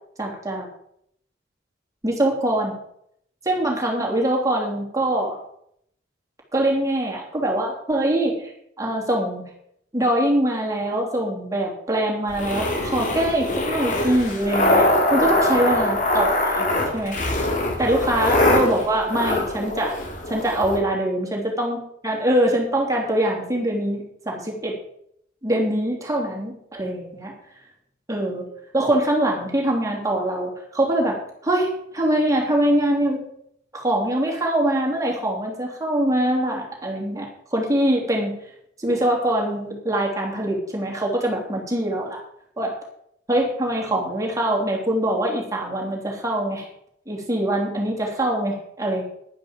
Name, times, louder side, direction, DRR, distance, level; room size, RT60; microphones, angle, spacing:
voice 1, 0.2-0.7 2.0-2.8 3.4-5.4 6.5-8.5 8.8-9.5 9.9-16.7 16.9-17.2 17.8-20.0 20.3-21.8 22.0-24.7 25.4-27.3 28.1-28.5 28.7-33.2 33.7-38.3 38.8-42.2 42.6-42.8 43.3-46.7 47.1-49.0, right 1 dB, 20° right, -1 dB, 3.1 m, -23 dB
sound 1, 12.3-20.8, left 1 dB, 45° left, 2.5 m, -22 dB
11.0 x 9.6 x 5.2 m, 0.71 s
head